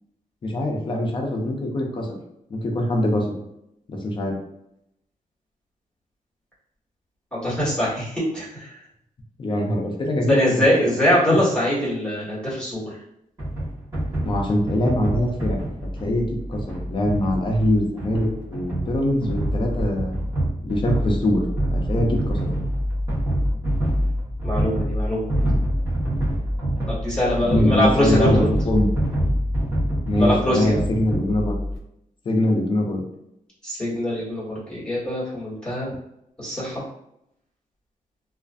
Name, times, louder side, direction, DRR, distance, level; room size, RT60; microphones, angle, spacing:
voice 1, 0.4-2.1 2.5-3.4 3.9-4.4 9.4-10.6 11.3-11.4 14.2-15.6 16.0-20.2 20.6-21.4 21.7-22.5 27.4-28.9 30.1-31.5 32.3-33.0, left 1 dB, 35° left, 1 dB, 0.5 m, -23 dB
voice 2, 7.3-8.7 10.3-12.8 24.4-25.3 26.9-28.5 30.2-30.7 33.6-35.9 36.4-36.8, equal, 5° left, -8 dB, 1.2 m, -23 dB
sound 1, 13.4-31.8, equal, 25° right, 1.0 m, -26 dB
2.4 x 2.4 x 2.4 m, 0.79 s
wide cardioid pair, 145°, 14 cm